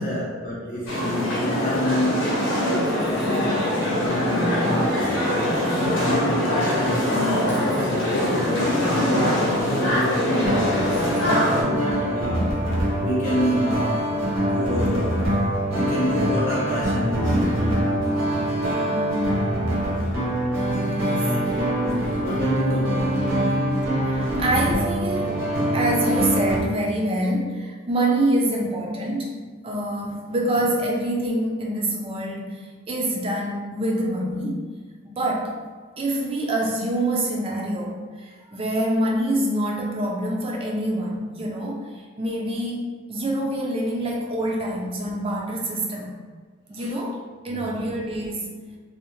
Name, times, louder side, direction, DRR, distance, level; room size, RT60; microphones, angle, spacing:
voice 1, 0.0-2.5 3.1-5.1 5.9-8.4 8.8-11.0 11.6-12.7 13.0-15.3 15.7-17.4 21.1-23.5 46.8-46.9 47.5-47.8, equal, 40° left, -6 dB, 0.4 m, -28 dB
sound 1, 0.9-11.6, left 1 dB, 65° left, 0.8 m, -23 dB
voice 2, 3.0-3.6 5.5-6.1 11.6-11.8 18.9-19.4 20.0-20.2 20.8-21.3 24.0-25.4 25.7-29.4 29.6-34.6 35.0-35.6 36.0-42.8 43.1-46.2 46.7-48.5, right 1 dB, 25° right, -1 dB, 0.3 m, -26 dB
sound 2, 10.4-26.6, equal, 75° right, 0.7 m, -24 dB
2.6 x 2.1 x 2.9 m, 1.5 s
head